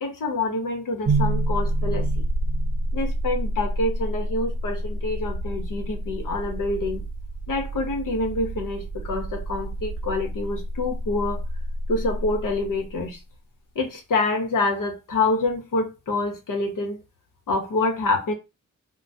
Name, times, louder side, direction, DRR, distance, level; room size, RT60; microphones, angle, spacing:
voice 1, 0.0-2.2 2.9-7.0 7.5-11.4 11.9-13.2 13.7-17.0 17.5-18.3, left 2 dB, 85° left, 1.1 m, -26 dB
sound 1, 1.1-13.1, right 1 dB, 40° right, 0.5 m, -28 dB
3.7 x 2.2 x 2.7 m
cardioid pair, 85°, 31 cm